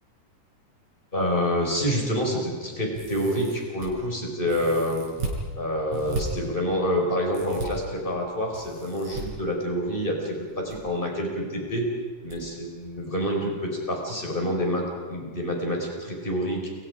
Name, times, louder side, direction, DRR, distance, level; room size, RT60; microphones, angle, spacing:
voice 1, 1.1-5.1 5.5-11.8 12.2-16.7, equal, 15° left, 0 dB, 5.4 m, -27 dB
sound 1, 2.9-3.9 4.5-5.4 5.9-6.2 7.3-7.7 8.5-9.2 10.3-10.8 11.0-11.1 12.3-12.4 12.8-12.9, right 3 dB, 45° right, 6.5 m, -35 dB
29.5 x 25.5 x 5.1 m, 1.6 s
omnidirectional pair, 4.0 m